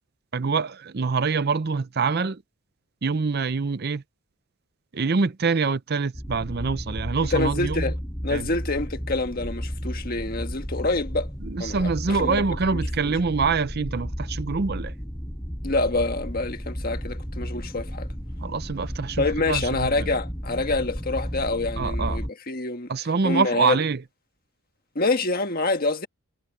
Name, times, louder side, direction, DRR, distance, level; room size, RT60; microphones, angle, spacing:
voice 1, 0.3-2.4 3.0-4.0 4.9-7.9 8.3-8.5 11.4-14.9 18.4-20.1 21.8-22.2 22.9-24.0, right 4 dB, 45° right, 0.6 m, -25 dB
sound 1, 6.1-22.3, equal, 10° left, 4.7 m, -33 dB
voice 2, 7.3-8.0 8.2-11.3 11.6-12.4 12.7-12.8 15.6-18.1 19.2-22.9 23.2-23.8 24.9-26.1, left 2 dB, 40° left, 1.5 m, -26 dB
head